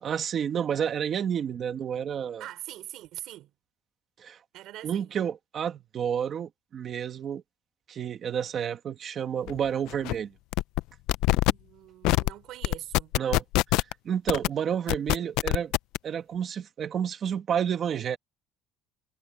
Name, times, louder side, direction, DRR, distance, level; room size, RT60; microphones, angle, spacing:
voice 1, 0.0-2.4 4.2-4.4 4.8-7.4 7.9-10.3 13.2-13.4 13.7-15.7 16.0-18.2, right 8 dB, 30° right, 1.8 m, -30 dB
voice 2, 2.4-3.5 4.5-5.2 11.5-13.1, right 14 dB, 50° right, 3.8 m, -43 dB
sound 1, 9.5-9.6 9.9-10.1 10.5-10.8 11.1-11.5 12.0-12.3 12.6-13.9 14.3-14.5 14.9-16.0, left 20 dB, 65° left, 0.4 m, -23 dB
cardioid pair, 170°, 0 cm